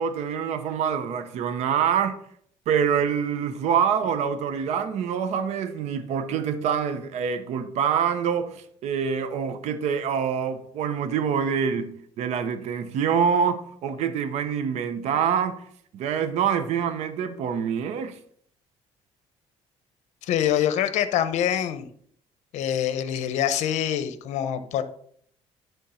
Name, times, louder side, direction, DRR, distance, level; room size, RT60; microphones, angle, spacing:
voice 1, 0.0-2.2 2.7-15.6 15.9-18.2, right 7 dB, 70° right, 0.8 m, -25 dB
voice 2, 20.2-21.9 22.5-24.8, left 10 dB, 75° left, 0.8 m, -25 dB
10.5 x 3.6 x 5.6 m
cardioid pair, 150°, 12 cm